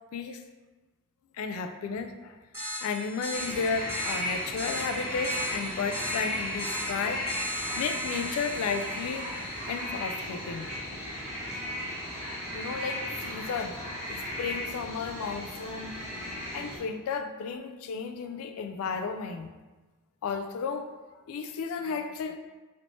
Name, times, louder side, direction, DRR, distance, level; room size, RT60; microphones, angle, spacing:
voice 1, 1.4-2.4 2.8-7.3 7.8-9.3 9.7-10.7 12.5-13.8 14.1-16.0 16.5-19.5 20.2-20.9 21.3-22.4, left 5 dB, 65° left, 8 dB, 0.3 m, -33 dB
sound 1, 2.5-9.7, equal, 10° right, 0.9 m, -39 dB
sound 2, 3.3-16.8, left 1 dB, 30° left, 1.2 m, -35 dB
3.2 x 3.0 x 2.7 m, 1.2 s
head